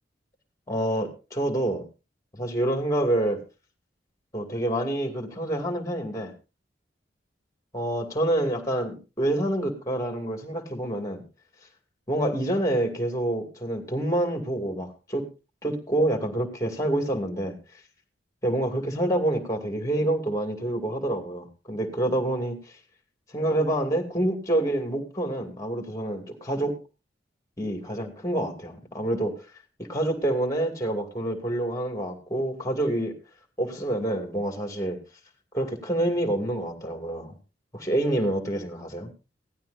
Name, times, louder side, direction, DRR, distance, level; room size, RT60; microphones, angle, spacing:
voice 1, 0.7-1.8 2.3-3.4 4.3-6.3 7.7-11.2 12.1-15.3 15.6-17.6 18.4-22.6 23.3-26.8 27.6-29.3 29.8-33.1 33.6-35.0 35.5-37.3 37.7-39.1, right 1 dB, 20° left, 5 dB, 2.4 m, -27 dB
17.0 x 13.0 x 2.7 m, 0.31 s
head